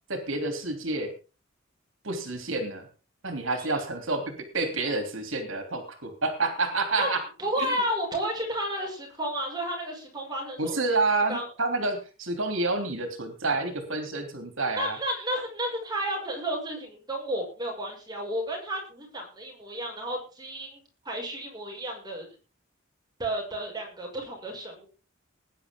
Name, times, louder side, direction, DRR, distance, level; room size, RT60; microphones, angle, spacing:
voice 1, 0.1-1.1 2.0-2.9 3.2-7.2 7.6-7.7 10.6-15.0, right 3 dB, 70° right, 5 dB, 3.1 m, -29 dB
voice 2, 7.0-11.0 11.3-11.5 14.8-22.3 23.2-24.9, equal, 20° right, 0 dB, 6.2 m, -32 dB
20.0 x 10.5 x 3.8 m, 0.34 s
head